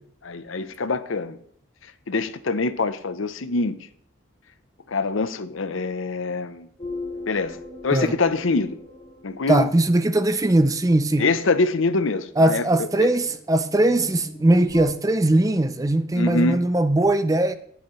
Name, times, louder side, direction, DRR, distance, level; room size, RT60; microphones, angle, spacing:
voice 1, 0.2-1.4 2.1-3.8 4.9-6.7 7.3-7.6 7.8-8.8 9.2-9.7 11.2-13.1 16.1-16.6, left 3 dB, 70° left, 0.7 m, -24 dB
sound 1, 6.8-9.9 12.2-14.9, left 2 dB, 35° left, 3.6 m, -39 dB
voice 2, 9.5-11.3 12.4-17.5, right 1 dB, 15° right, 0.5 m, -20 dB
18.0 x 7.2 x 3.2 m
head